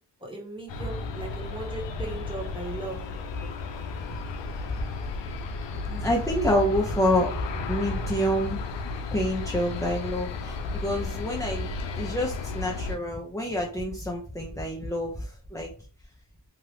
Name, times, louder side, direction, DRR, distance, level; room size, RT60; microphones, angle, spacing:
voice 1, 0.2-3.1, right 2 dB, 10° right, -1 dB, 1.2 m, -37 dB
Aircraft, 0.7-13.0, left 4 dB, 85° left, 0.6 m, -34 dB
voice 2, 5.8-8.6 9.1-11.7 12.0-15.7, equal, 5° left, -1 dB, 0.6 m, -27 dB
2.8 x 2.5 x 3.3 m, 0.40 s
cardioid pair, 60°, 43 cm